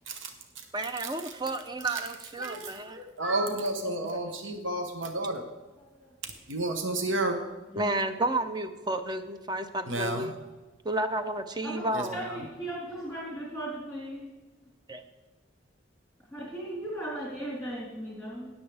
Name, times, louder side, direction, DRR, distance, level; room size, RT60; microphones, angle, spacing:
voice 1, 0.1-1.3 1.8-2.0 2.4-5.4 6.5-7.4 9.9-10.3 11.9-12.4, right 2 dB, 70° right, 5 dB, 1.0 m, -32 dB
voice 2, 0.7-3.0 7.8-10.3 10.9-12.1 14.9-15.0, right 2 dB, 20° right, 8 dB, 0.6 m, -31 dB
voice 3, 5.8-6.1 7.7-8.2 11.6-14.3 16.3-18.5, right 1 dB, ahead, -6 dB, 3.7 m, -38 dB
18.5 x 7.2 x 3.4 m, 1.2 s
head